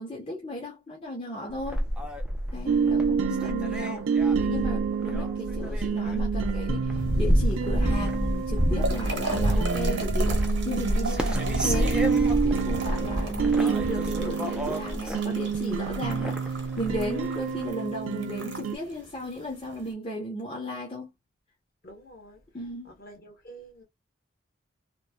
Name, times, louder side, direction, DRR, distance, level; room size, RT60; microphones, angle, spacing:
voice 1, 0.0-1.9 2.5-4.1 4.4-12.0 12.4-21.1 22.5-22.9, equal, 25° left, 0.7 m, -35 dB
sound 1, 1.5-17.7, equal, 5° right, 0.3 m, -29 dB
voice 2, 2.5-3.1 21.8-23.8, right 1 dB, 45° left, 1.0 m, -49 dB
sound 2, 2.7-18.8, right 5 dB, 85° right, 0.4 m, -29 dB
sound 3, 7.0-19.9, right 3 dB, 65° right, 0.9 m, -39 dB
3.0 x 2.0 x 2.2 m
head